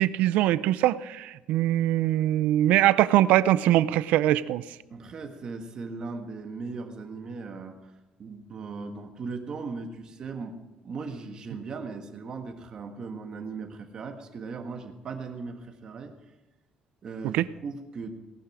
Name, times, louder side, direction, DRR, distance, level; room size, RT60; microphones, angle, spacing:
voice 1, 0.0-4.6 17.3-17.4, right 13 dB, 85° right, 17 dB, 0.5 m, -22 dB
voice 2, 4.9-7.9 8.2-10.6 10.8-16.3 17.0-18.1, right 4 dB, 30° right, 4 dB, 1.6 m, -38 dB
18.0 x 11.5 x 4.9 m, 1.0 s
cardioid pair, 180°, 2 cm